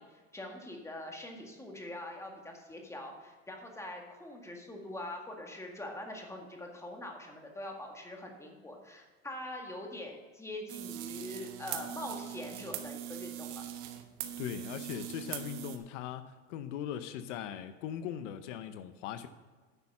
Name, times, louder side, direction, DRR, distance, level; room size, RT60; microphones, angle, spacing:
voice 1, 0.0-13.6, left 1 dB, 5° left, 2 dB, 1.9 m, -43 dB
sound 1, 10.7-15.8, right 12 dB, 60° right, 1.3 m, -41 dB
voice 2, 14.4-19.3, left 10 dB, 70° left, 11 dB, 0.9 m, -40 dB
10.0 x 6.4 x 5.6 m, 1.4 s
supercardioid pair, 120°, 38 cm